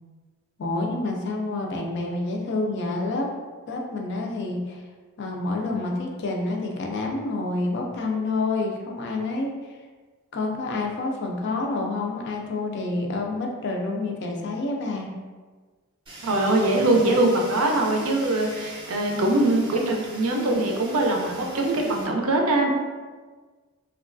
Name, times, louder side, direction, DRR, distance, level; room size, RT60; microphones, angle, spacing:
voice 1, 0.6-3.3 3.7-4.8 5.2-9.5 10.3-15.1, left 2 dB, 50° left, 1 dB, 0.4 m, -28 dB
Fire, 16.1-22.1, right 1 dB, 20° right, 0.5 m, -42 dB
voice 2, 16.2-22.7, right 2 dB, 70° right, 1 dB, 0.5 m, -22 dB
3.0 x 2.2 x 2.5 m, 1.4 s
head